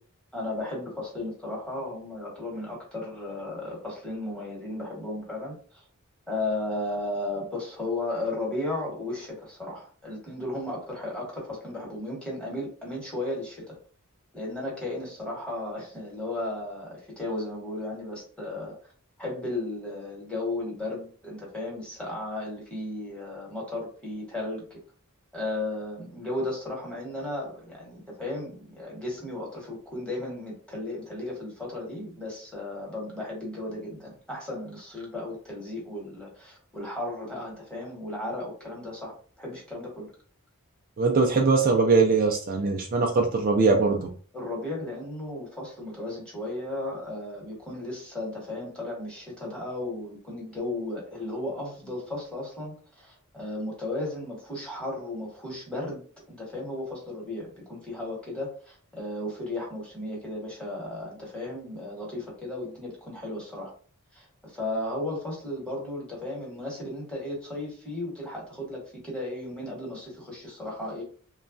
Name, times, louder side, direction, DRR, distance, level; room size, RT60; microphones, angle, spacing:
voice 1, 0.3-5.6 6.3-13.8 14.3-18.8 19.2-24.8 25.3-40.1 44.3-63.7 64.1-71.0, left 2 dB, 5° left, -3 dB, 1.2 m, -35 dB
voice 2, 41.0-44.1, right 4 dB, 40° right, 1 dB, 0.4 m, -21 dB
3.1 x 2.3 x 2.5 m, 0.43 s
head